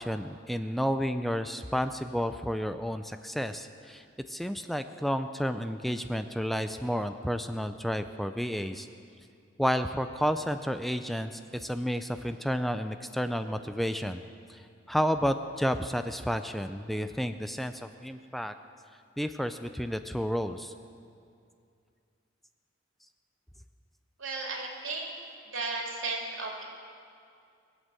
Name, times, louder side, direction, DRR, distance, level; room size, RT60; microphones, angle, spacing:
voice 1, 0.0-8.9 9.6-14.2 14.5-18.5 19.2-20.7, equal, ahead, 9 dB, 0.3 m, -31 dB
voice 2, 24.2-25.1 25.5-26.6, right 3 dB, 85° right, -1 dB, 2.8 m, -34 dB
21.0 x 8.1 x 7.7 m, 2.4 s
head